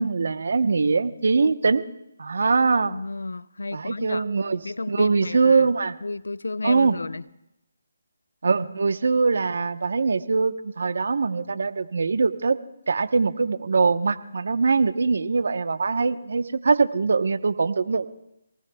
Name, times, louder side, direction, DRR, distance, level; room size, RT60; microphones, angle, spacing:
voice 1, 0.0-1.8 2.2-2.9 3.7-4.6 4.9-5.9 6.6-7.0 8.4-12.6 12.9-18.1, right 4 dB, 65° right, 10 dB, 1.0 m, -22 dB
voice 2, 2.9-4.2 4.6-5.7 6.0-7.2, left 3 dB, 85° left, 18 dB, 0.6 m, -32 dB
27.5 x 18.5 x 2.3 m, 0.86 s
figure-of-eight pair, 160°, 0 cm